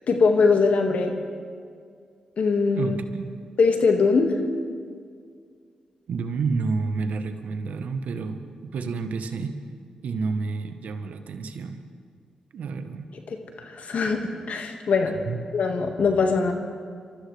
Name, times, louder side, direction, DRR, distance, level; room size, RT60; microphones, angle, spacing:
voice 1, 0.1-1.1 2.4-3.0 3.6-4.3 13.6-15.1 15.5-16.5, left 4 dB, 65° left, 4 dB, 1.7 m, -21 dB
voice 2, 2.7-3.4 6.1-9.6 10.0-11.8 12.5-13.1 15.2-15.4, right 4 dB, 75° right, 8 dB, 1.1 m, -29 dB
27.0 x 13.5 x 3.3 m, 2.1 s
supercardioid pair, 40°, 3 cm